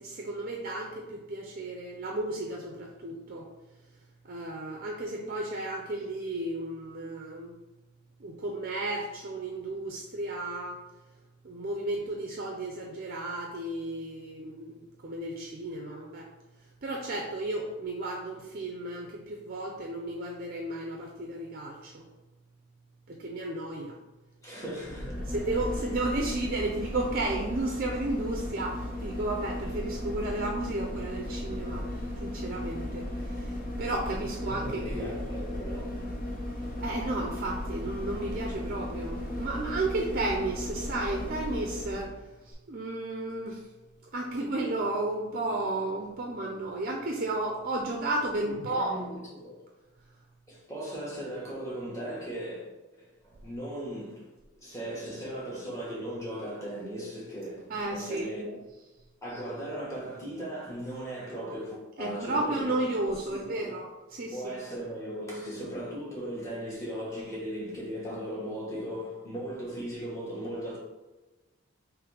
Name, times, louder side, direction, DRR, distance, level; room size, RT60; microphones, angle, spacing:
voice 1, 0.0-3.5 4.3-7.5 8.2-10.8 11.4-16.3 16.8-22.0 23.1-24.0 25.3-31.8 32.2-35.1 36.8-42.1 42.5-43.6 44.1-49.0 57.7-58.3 62.0-64.4, right 2 dB, 40° right, 0.5 m, -33 dB
voice 2, 24.4-25.4 34.4-36.0 48.4-49.6 50.5-52.6 53.0-54.3 54.6-58.6 59.2-62.8 63.3-63.7 64.3-70.8, equal, 15° left, 1.3 m, -38 dB
sound 1, 24.8-42.1 42.5-42.6, left 1 dB, 40° left, 0.7 m, -36 dB
3.4 x 3.1 x 4.8 m
head